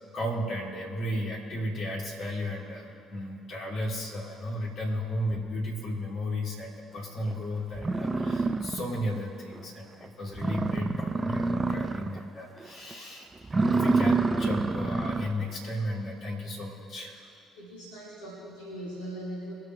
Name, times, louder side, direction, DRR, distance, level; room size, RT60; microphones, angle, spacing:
voice 1, 0.1-17.3, left 1 dB, 55° left, -3 dB, 3.3 m, -34 dB
sound 1, 7.3-7.4 7.8-9.2 9.6-9.7 10.0-10.1 10.3-12.3 12.6-12.9 13.4-15.4, right 3 dB, 25° right, 0.6 m, -27 dB
voice 2, 17.5-19.5, right 1 dB, 75° left, -7 dB, 2.6 m, -40 dB
22.5 x 9.1 x 3.4 m, 2.6 s
figure-of-eight pair, 50°, 0 cm